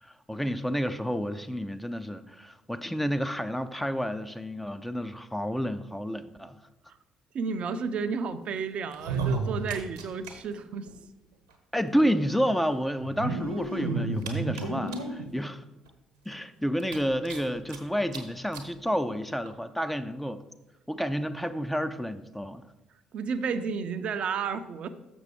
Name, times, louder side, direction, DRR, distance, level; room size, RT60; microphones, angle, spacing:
voice 1, 0.0-6.6 11.7-15.6 16.3-20.4 20.9-22.6, equal, 5° left, 10 dB, 0.5 m, -30 dB
voice 2, 7.3-10.9 23.1-24.9, right 5 dB, 50° right, 10 dB, 0.5 m, -32 dB
sound 1, 8.9-10.3 10.6-10.7 10.9-11.0 12.0-12.1 13.0-15.3 15.9-16.0 16.3-16.4 16.8-17.8 18.1-18.2 18.5-18.7 19.5-19.6, right 3 dB, 80° right, 0.9 m, -32 dB
6.6 x 6.1 x 4.9 m, 1.0 s
figure-of-eight pair, 45°, 2 cm